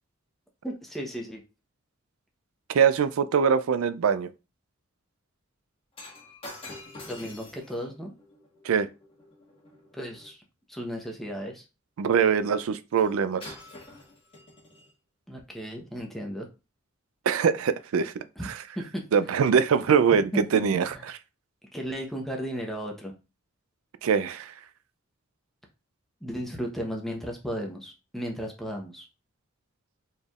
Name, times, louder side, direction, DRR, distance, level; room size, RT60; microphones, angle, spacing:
voice 1, 0.6-1.4 7.1-8.1 9.9-10.4 10.7-11.7 15.3-16.5 18.4-18.5 18.8-19.0 20.3-20.7 20.9-21.0 21.7-23.1 26.2-29.1, equal, ahead, 0.8 m, -35 dB
voice 2, 2.7-4.3 8.6-8.9 12.0-13.5 17.3-18.1 19.1-20.9 24.0-24.5, right 6 dB, 80° right, 0.4 m, -23 dB
Shatter, 5.9-10.3 13.0-13.1 13.4-14.9 15.6-15.8, left 2 dB, 30° left, 1.5 m, -47 dB
4.3 x 3.3 x 2.4 m
head